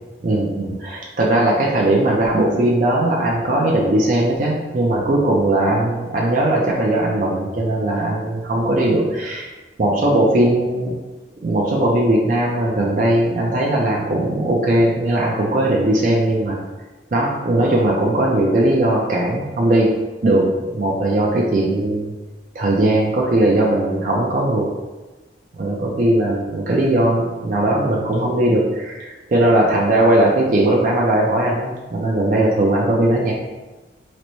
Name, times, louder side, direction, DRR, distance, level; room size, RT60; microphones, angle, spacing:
voice 1, 0.2-9.5 9.8-10.9 11.4-16.6 17.1-19.9 20.2-22.1 22.5-24.7 25.5-33.3, right 1 dB, 45° right, -3 dB, 0.4 m, -18 dB
3.9 x 2.1 x 3.0 m, 1.2 s
head